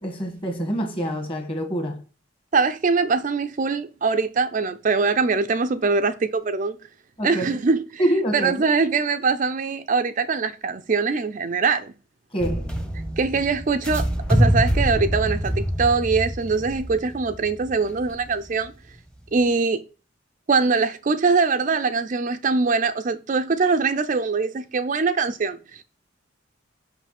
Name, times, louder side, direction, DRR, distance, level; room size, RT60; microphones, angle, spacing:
voice 1, 0.0-2.0 7.2-7.5 8.0-8.6 12.3-12.7, right 1 dB, 25° left, 1.5 m, -25 dB
voice 2, 2.5-6.8 7.2-8.0 8.3-11.9 13.2-18.7 19.3-19.8 20.5-25.8, right 4 dB, 40° right, 0.4 m, -22 dB
sound 1, 12.4-18.5, equal, 5° left, 0.8 m, -25 dB
5.8 x 5.4 x 4.1 m
head